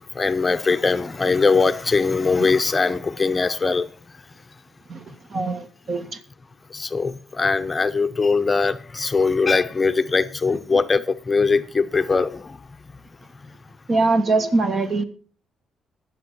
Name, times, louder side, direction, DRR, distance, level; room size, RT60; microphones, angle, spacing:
voice 1, 0.0-3.9 6.7-12.6, left 4 dB, 25° left, 0.7 m, -21 dB
voice 2, 5.3-6.2 13.9-15.0, right 3 dB, 45° right, 1.6 m, -22 dB
20.0 x 7.2 x 4.5 m
cardioid pair, 90°, 0 cm